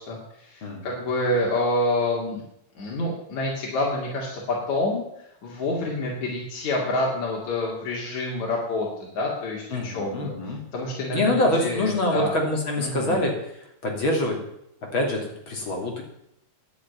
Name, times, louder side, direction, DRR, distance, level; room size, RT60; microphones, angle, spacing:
voice 1, 0.0-2.4 2.8-12.4 12.8-13.2, left 1 dB, 75° left, -3 dB, 3.9 m, -28 dB
voice 2, 0.6-0.9 9.7-10.6 11.1-14.4 14.9-16.0, left 1 dB, 45° left, 1 dB, 3.4 m, -25 dB
11.5 x 8.5 x 9.5 m, 0.78 s
omnidirectional pair, 3.3 m